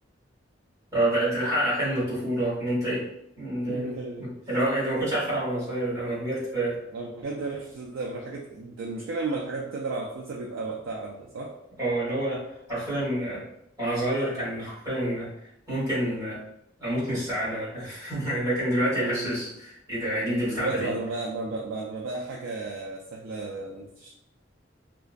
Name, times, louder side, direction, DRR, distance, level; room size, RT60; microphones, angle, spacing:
voice 1, 0.9-3.1 3.4-6.8 11.8-12.4 12.7-13.4 13.8-15.3 15.7-16.4 16.8-20.9, right 1 dB, 20° right, -9 dB, 1.4 m, -28 dB
voice 2, 3.7-4.3 6.9-11.5 19.0-19.3 20.5-24.1, right 3 dB, 80° right, -1 dB, 0.3 m, -33 dB
2.4 x 2.2 x 2.4 m, 0.80 s
head